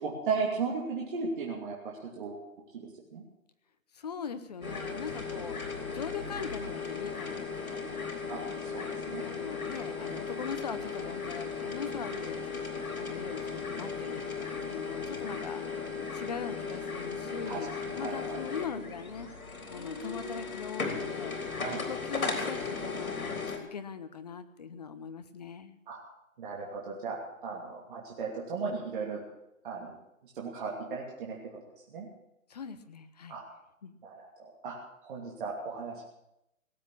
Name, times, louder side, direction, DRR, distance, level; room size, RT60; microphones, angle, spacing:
voice 1, 0.0-2.4 2.7-3.2 8.3-9.3 17.5-17.6 17.8-18.4 21.6-21.8 25.9-26.0 26.4-29.2 29.6-29.9 30.3-31.4 31.9-32.1 33.3-33.4 34.0-34.3 34.6-34.7 35.0-36.0, right 4 dB, 35° right, -3 dB, 2.8 m, -36 dB
voice 2, 3.9-5.6 5.9-8.0 9.2-12.5 12.9-19.3 19.7-21.4 21.9-23.4 23.7-25.8 32.5-33.4 33.8-34.0, left 6 dB, 30° left, 12 dB, 0.8 m, -41 dB
sound 1, 4.6-23.6, left 5 dB, 85° left, 3.6 m, -36 dB
17.5 x 8.2 x 8.6 m, 0.85 s
hypercardioid pair, 160°, 41 cm